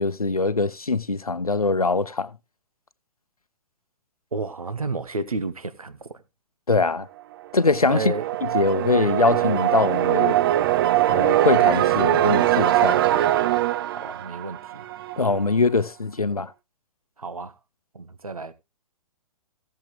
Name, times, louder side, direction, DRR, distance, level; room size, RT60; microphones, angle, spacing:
voice 1, 0.0-2.3 6.7-7.1 7.5-8.1 8.5-10.4 11.1-13.2 15.2-16.5, left 3 dB, 85° left, 0.8 m, -22 dB
voice 2, 4.3-6.2 7.9-8.2 13.9-14.8 17.2-17.5 17.9-18.5, right 3 dB, 75° right, 1.2 m, -31 dB
sound 1, 7.6-15.3, right 14 dB, 40° right, 0.6 m, -22 dB
16.0 x 7.4 x 3.2 m
figure-of-eight pair, 120°, 18 cm